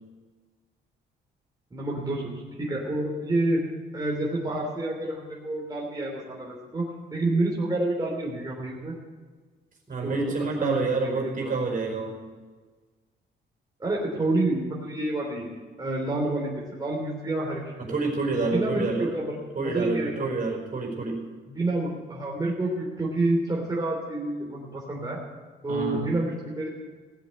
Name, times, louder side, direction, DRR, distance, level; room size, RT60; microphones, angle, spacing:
voice 1, 1.7-2.4 2.7-3.6 3.9-6.8 7.1-9.0 10.0-10.3 10.6-11.5 13.8-15.4 15.8-17.6 17.9-18.0 18.3-20.2 21.5-25.2 25.6-26.7, right 2 dB, 20° right, -3 dB, 3.5 m, -28 dB
voice 2, 9.9-12.1 17.8-19.1 19.5-21.2 25.7-26.1, right 3 dB, 45° right, 1 dB, 4.8 m, -28 dB
17.5 x 8.1 x 7.8 m, 1.4 s
cardioid pair, 90°, 20 cm